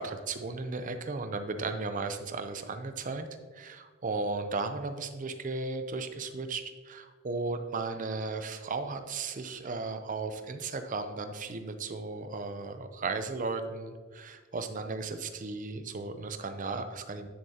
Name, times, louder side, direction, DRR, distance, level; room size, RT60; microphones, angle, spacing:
voice 1, 0.0-3.3 3.5-17.3, right 3 dB, 40° right, 8 dB, 0.6 m, -35 dB
9.6 x 7.1 x 2.8 m, 1.5 s
head